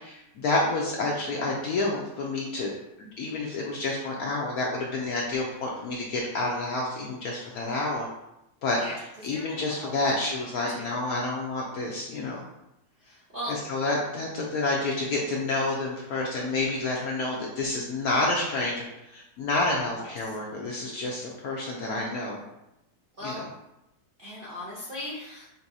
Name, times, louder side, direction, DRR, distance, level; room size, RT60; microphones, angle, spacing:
voice 1, 0.0-2.7 3.0-8.1 8.6-12.4 13.5-22.4 23.2-23.4, left 2 dB, 75° left, -2 dB, 0.9 m, -29 dB
voice 2, 8.8-10.2 10.7-10.9 13.0-13.5 20.0-20.2 23.2-23.4 24.2-25.5, left 1 dB, 50° right, -8 dB, 0.6 m, -38 dB
5.5 x 2.6 x 2.6 m, 0.89 s
omnidirectional pair, 2.0 m